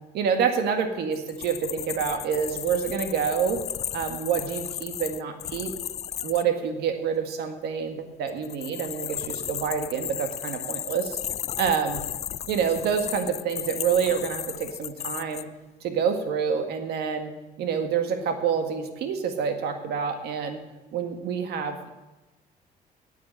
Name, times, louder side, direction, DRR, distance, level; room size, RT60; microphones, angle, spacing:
voice 1, 0.1-3.6 3.9-5.7 6.2-11.2 11.6-12.0 12.5-15.4 15.8-17.3 17.6-20.6 20.9-21.9, right 7 dB, 75° right, 6 dB, 1.8 m, -27 dB
sound 1, 1.1-6.4 8.3-15.4, left 10 dB, 40° left, 0.4 m, -35 dB
9.5 x 8.5 x 8.7 m, 1.1 s
cardioid pair, 110°, 17 cm